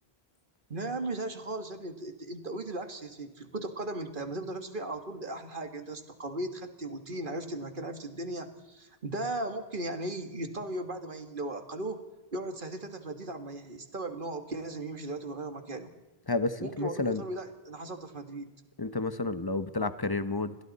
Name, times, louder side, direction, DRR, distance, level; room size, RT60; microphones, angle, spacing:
voice 1, 0.7-12.0 12.3-15.9 16.6-18.5, right 2 dB, 55° right, 7 dB, 2.0 m, -37 dB
voice 2, 16.3-17.2 18.8-20.6, left 3 dB, 25° left, 12 dB, 0.9 m, -30 dB
29.0 x 22.0 x 4.2 m, 1.1 s
omnidirectional pair, 1.1 m